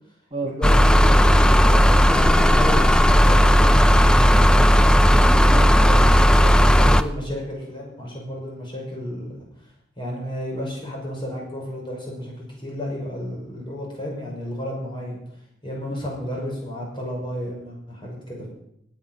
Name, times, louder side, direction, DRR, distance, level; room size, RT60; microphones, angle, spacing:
voice 1, 0.4-4.7 6.5-9.3 10.0-15.2 15.6-18.5, equal, 25° left, -2 dB, 5.5 m, -32 dB
sound 1, 0.6-7.0, equal, 5° left, 0.4 m, -15 dB
voice 2, 5.2-6.9 15.8-16.0, right 2 dB, 25° right, -1 dB, 1.5 m, -33 dB
18.5 x 8.9 x 5.5 m, 0.76 s
head